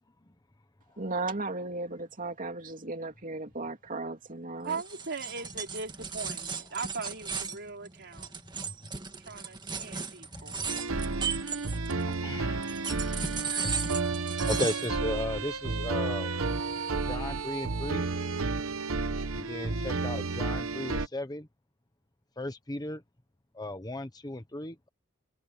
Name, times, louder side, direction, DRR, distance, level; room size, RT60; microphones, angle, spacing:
voice 1, 1.0-4.8, right 3 dB, 40° right, 2.8 m, -35 dB
voice 2, 4.6-8.3 9.2-10.6, right 4 dB, 55° right, 4.0 m, -39 dB
sound 1, 4.7-12.1 12.6-15.0, right 5 dB, 20° right, 1.8 m, -36 dB
voice 3, 10.3-10.7 12.1-13.9 14.4-16.4 17.0-18.1 19.3-21.5 22.4-23.0 23.5-24.9, left 1 dB, 20° left, 1.1 m, -36 dB
sound 2, 10.7-21.1, right 3 dB, 75° right, 1.1 m, -31 dB
head